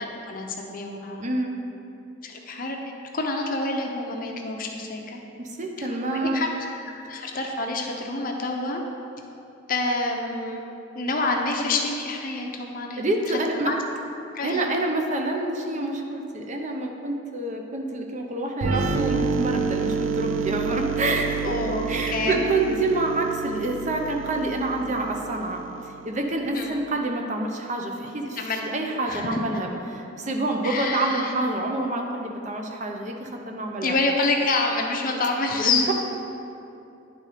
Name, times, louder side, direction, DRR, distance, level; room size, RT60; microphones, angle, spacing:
voice 1, 0.0-1.2 2.2-2.8 3.1-5.2 5.8-6.5 7.1-8.8 9.7-10.6 11.0-13.0 13.6-13.8 14.3-14.6 21.4-22.4 26.5-26.8 28.4-28.7 29.0-29.4 30.6-31.3 33.8-35.9, left 3 dB, 45° left, 1 dB, 0.7 m, -27 dB
voice 2, 1.2-1.6 5.4-6.4 13.0-13.7 14.4-21.5 21.9-28.4 28.7-34.0 35.5-35.9, right 2 dB, 35° right, 2 dB, 0.7 m, -27 dB
sound 1, 18.6-26.2, right 5 dB, 90° right, 0.5 m, -29 dB
10.0 x 3.7 x 4.9 m, 2.8 s
head